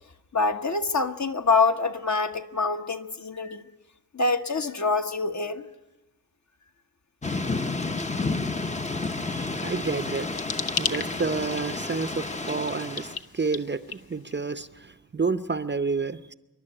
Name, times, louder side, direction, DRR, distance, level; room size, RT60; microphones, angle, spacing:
voice 1, 0.3-3.6 4.1-5.7, left 4 dB, 50° left, 1.2 m, -25 dB
Thunder / Rain, 7.2-13.2, left 3 dB, 20° left, 0.7 m, -31 dB
voice 2, 9.2-10.3 10.8-16.3, right 4 dB, 30° right, 0.7 m, -30 dB
sound 1, 9.9-14.6, left 6 dB, 75° left, 0.9 m, -36 dB
26.5 x 11.5 x 10.0 m
wide cardioid pair, 145°, 37 cm